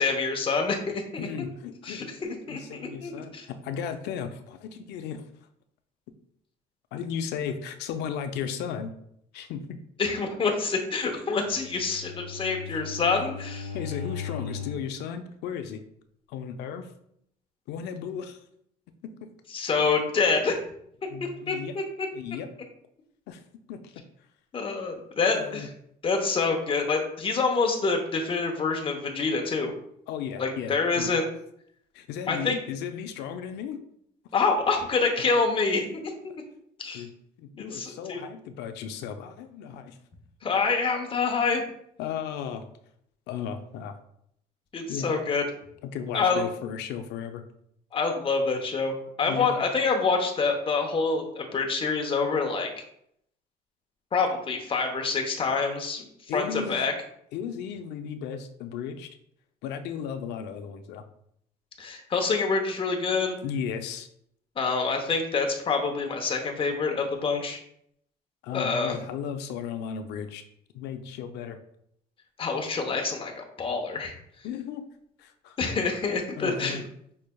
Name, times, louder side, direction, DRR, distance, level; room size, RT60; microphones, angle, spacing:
voice 1, 0.0-1.3 1.8-2.0 2.5-3.5 10.0-13.7 19.5-20.5 21.5-22.1 24.5-25.7 26.0-29.7 30.4-31.3 32.3-32.6 34.3-36.3 36.8-37.1 37.6-38.2 40.4-41.6 44.7-45.4 46.1-46.4 47.9-52.7 54.1-56.0 56.3-56.9 61.8-63.4 64.6-67.6 68.5-69.0 72.4-74.1 75.6-76.8, left 4 dB, 30° left, 2 dB, 0.8 m, -26 dB
voice 2, 1.2-5.2 6.9-8.9 9.3-9.8 13.7-15.8 16.3-16.9 17.7-18.4 19.0-19.3 21.1-21.7 22.1-22.5 23.3-23.4 23.7-24.0 25.4-25.7 30.1-31.1 31.9-33.8 35.9-36.0 36.9-37.1 37.4-40.0 42.0-42.7 43.3-44.0 44.9-45.1 45.8-47.4 49.2-49.5 56.3-56.8 57.3-59.1 59.6-61.0 63.4-64.1 68.4-70.4 70.7-71.6 74.4-74.9 75.2-75.6 76.4-76.8, left 7 dB, 80° left, 8 dB, 0.5 m, -35 dB
Bowed string instrument, 11.3-15.0, left 6 dB, 45° right, 1.4 m, -37 dB
5.3 x 3.2 x 2.2 m, 0.71 s
cardioid pair, 110°, 17 cm